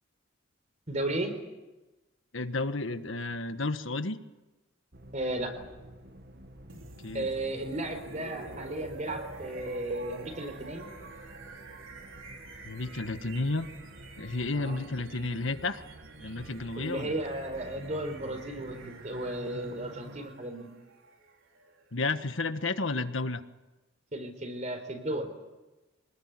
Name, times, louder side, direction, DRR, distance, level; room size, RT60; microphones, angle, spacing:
voice 1, 0.9-1.4 5.1-5.6 7.1-10.9 14.5-14.8 16.8-20.7 24.1-25.3, right 1 dB, 35° right, 7 dB, 4.3 m, -34 dB
voice 2, 2.3-4.2 7.0-7.3 12.6-13.7 14.2-15.8 16.2-17.1 21.9-23.4, left 3 dB, 70° left, 9 dB, 1.5 m, -32 dB
sound 1, 4.9-20.3, right 1 dB, 50° right, 1.9 m, -50 dB
sound 2, 6.7-22.6, right 3 dB, 80° right, 4.0 m, -49 dB
25.5 x 20.0 x 9.7 m, 1.1 s
head